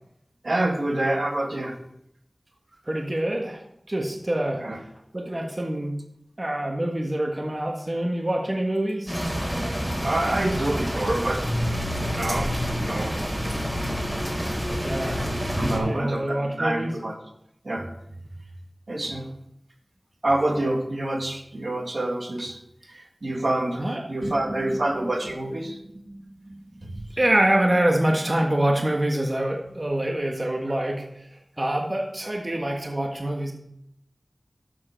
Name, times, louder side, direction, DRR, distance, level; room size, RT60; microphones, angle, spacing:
voice 1, 0.4-1.8 4.6-4.8 10.0-11.5 12.2-12.6 12.8-13.1 15.5-17.1 17.7-17.9 18.9-19.2 20.2-22.6 22.9-25.8 26.8-27.0, right 1 dB, 70° right, 1 dB, 2.1 m, -27 dB
voice 2, 2.9-3.6 3.9-4.6 5.1-6.0 6.4-9.2 14.8-15.2 15.6-16.9 23.8-24.7 25.6-25.8 26.1-26.6 27.2-31.3 31.6-33.5, right 1 dB, 40° right, 1 dB, 1.5 m, -26 dB
sound 1, 9.1-15.8, equal, 5° right, 4.5 m, -28 dB
12.0 x 7.7 x 4.5 m, 0.76 s
wide cardioid pair, 50°, 0 cm